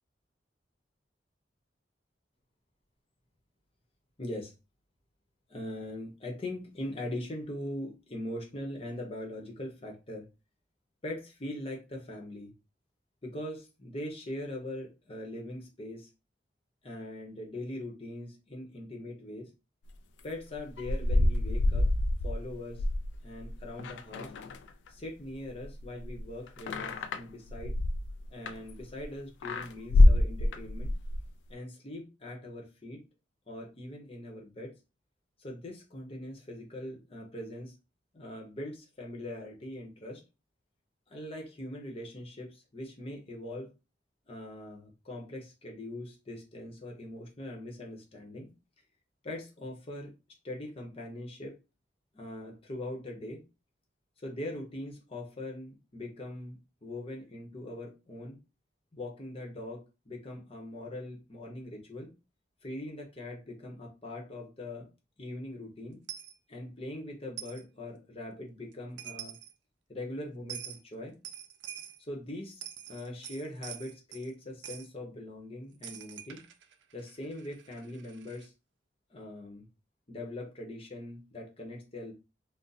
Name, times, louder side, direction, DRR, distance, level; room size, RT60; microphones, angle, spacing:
voice 1, 4.2-4.5 5.5-10.3 11.0-12.5 13.2-16.1 16.8-19.5 20.2-21.9 22.2-22.8 23.2-24.3 24.9-27.8 28.3-30.9 31.5-33.0 33.5-34.7 35.4-37.7 38.1-40.2 41.1-43.7 44.3-48.5 49.2-50.1 50.4-51.6 52.1-53.4 54.2-58.4 58.9-62.1 62.6-64.9 65.2-66.0 66.5-69.4 69.9-71.2 72.0-72.6 72.9-76.4 76.9-78.5 79.1-79.7 80.1-82.1, left 1 dB, 35° left, 0.8 m, -41 dB
sound 1, 20.5-25.1 25.3-29.0 29.4-31.3, left 1 dB, 85° left, 0.3 m, -26 dB
Coin (dropping), 66.1-66.3 67.4-67.6 68.7-68.8 69.0-69.5 70.5-70.8 71.2-72.0 72.5-74.3 74.6-74.9 75.8-78.5, right 10 dB, 85° right, 0.4 m, -45 dB
2.6 x 2.0 x 3.9 m
head